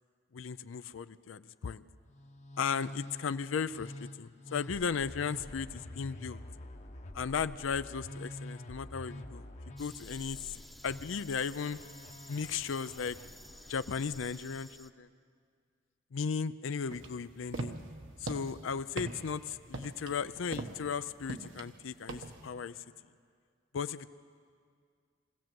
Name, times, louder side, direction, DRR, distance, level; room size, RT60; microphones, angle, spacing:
voice 1, 0.3-1.8 2.6-3.9 4.2-6.4 7.1-9.5 9.8-11.8 12.3-13.2 13.7-15.1 16.1-17.8 18.2-22.8 23.7-24.1, left 6 dB, 90° left, 12 dB, 0.5 m, -36 dB
Musical instrument, 2.1-13.8, left 1 dB, 40° left, 0.9 m, -47 dB
sound 1, 9.8-14.9, equal, ahead, 0.8 m, -53 dB
sound 2, 16.9-22.5, right 2 dB, 75° right, 1.2 m, -42 dB
23.0 x 16.5 x 7.7 m, 2.1 s
head